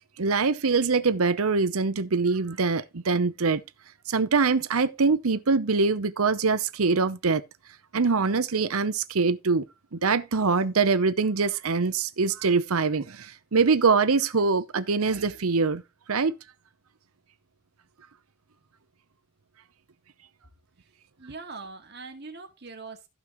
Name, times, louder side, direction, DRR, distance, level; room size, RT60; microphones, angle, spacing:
voice 1, 0.2-3.6 4.1-7.4 7.9-9.7 9.9-15.8 16.1-16.3, right 4 dB, 75° right, 0.8 m, -24 dB
voice 2, 21.2-23.1, right 4 dB, 50° right, 2.0 m, -42 dB
15.5 x 5.9 x 3.1 m
head